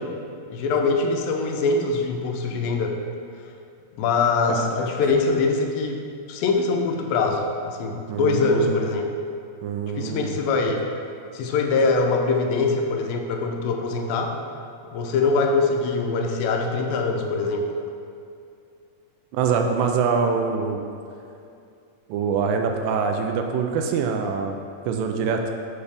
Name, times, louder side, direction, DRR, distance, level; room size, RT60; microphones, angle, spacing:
voice 1, 0.5-3.0 4.0-6.0 6.3-9.1 10.0-10.9 11.3-14.4 14.9-17.7, left 3 dB, 90° left, 3 dB, 2.3 m, -23 dB
voice 2, 4.5-4.9 8.1-8.9 9.6-10.4 19.3-20.8 22.1-24.6 24.9-25.4, right 5 dB, 80° right, 4 dB, 2.1 m, -24 dB
7.0 x 5.4 x 3.4 m, 2.5 s
omnidirectional pair, 4.0 m